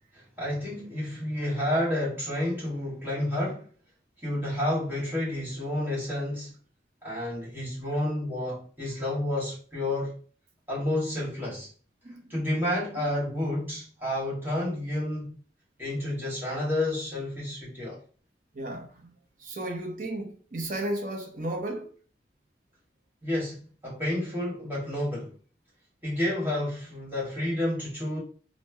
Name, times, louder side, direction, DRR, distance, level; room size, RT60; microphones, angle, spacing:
voice 1, 0.1-3.7 4.2-6.5 7.0-10.2 10.7-11.7 12.3-15.4 15.8-18.0 23.2-25.3 26.0-28.2, left 1 dB, 10° right, 1.3 m, -30 dB
voice 2, 12.0-12.4 13.0-13.4 18.5-19.1 19.4-21.9, right 1 dB, 45° right, 0.7 m, -34 dB
3.1 x 2.1 x 3.3 m
head